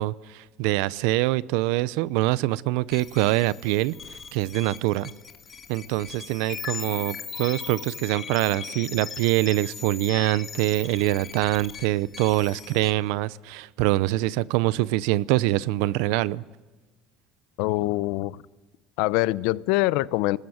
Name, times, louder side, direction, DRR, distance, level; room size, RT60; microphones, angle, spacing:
voice 1, 0.0-5.1 5.7-16.4, right 17 dB, 85° right, 19 dB, 0.7 m, -24 dB
sound 1, 2.9-12.9, left 6 dB, 35° left, 2.6 m, -39 dB
voice 2, 17.6-18.4 19.0-20.4, left 19 dB, 80° left, 18 dB, 0.7 m, -24 dB
25.5 x 19.5 x 7.9 m, 1.2 s
supercardioid pair, 100°, 0 cm